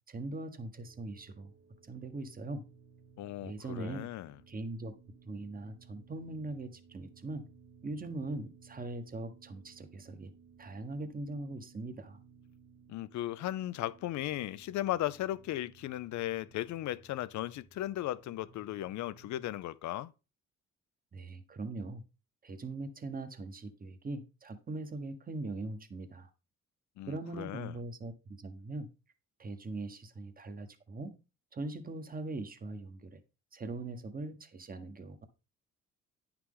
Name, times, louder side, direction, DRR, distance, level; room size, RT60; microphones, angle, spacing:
voice 1, 0.1-1.5 1.9-2.6 3.4-4.1 4.5-4.9 5.3-7.5 7.8-10.3 10.6-12.2 21.1-22.0 22.4-26.3 27.1-28.9 29.4-31.1 31.5-33.2 33.5-35.3, right 2 dB, 30° right, 1.3 m, -41 dB
sound 1, 0.7-19.5, right 6 dB, 45° right, 1.0 m, -60 dB
voice 2, 3.2-4.3 12.9-20.1 27.0-27.7, left 14 dB, 70° left, 0.5 m, -36 dB
9.6 x 5.9 x 3.8 m
cardioid pair, 90°, 30 cm